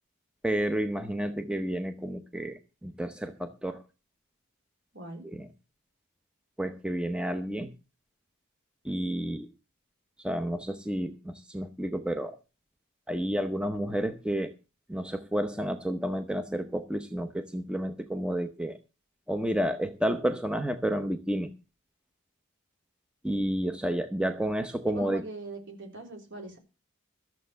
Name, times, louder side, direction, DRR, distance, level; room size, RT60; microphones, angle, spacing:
voice 1, 0.4-3.8 5.2-5.5 6.6-7.7 8.8-9.5 10.2-12.4 13.1-14.5 14.9-18.8 19.3-21.5 23.2-25.2, equal, 5° right, 8 dB, 0.8 m, -31 dB
voice 2, 4.9-5.2 24.9-26.6, right 2 dB, 55° right, 3 dB, 3.7 m, -42 dB
13.5 x 7.4 x 6.8 m, 0.31 s
head